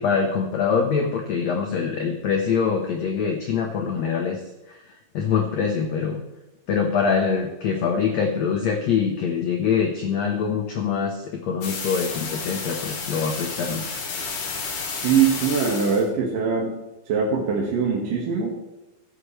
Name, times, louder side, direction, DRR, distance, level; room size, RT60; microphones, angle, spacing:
voice 1, 0.0-4.4 4.7-4.8 5.1-6.2 6.7-14.0, left 6 dB, 90° left, 2 dB, 1.5 m, -24 dB
sound 1, 11.6-16.1, left 5 dB, 55° left, 3.3 m, -31 dB
voice 2, 15.0-16.7 17.1-18.5, right 6 dB, 60° right, -2 dB, 3.1 m, -22 dB
16.0 x 8.4 x 3.3 m, 1.0 s
omnidirectional pair, 4.6 m